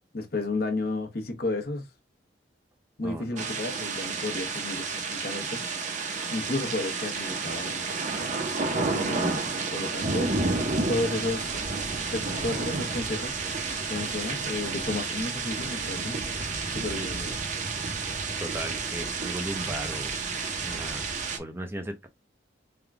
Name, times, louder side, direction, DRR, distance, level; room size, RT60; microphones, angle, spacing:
voice 1, 0.1-1.9 3.0-5.6 6.3-7.9 8.7-10.3 10.9-11.6 12.1-13.4 13.9-16.2 16.7-17.4, left 2 dB, 55° left, 1.0 m, -32 dB
voice 2, 3.0-3.5 18.4-20.2 20.6-21.1 21.4-22.1, right 1 dB, 15° right, 0.5 m, -36 dB
sound 1, 3.4-21.4, right 4 dB, 45° right, 0.8 m, -31 dB
3.5 x 2.3 x 3.5 m
head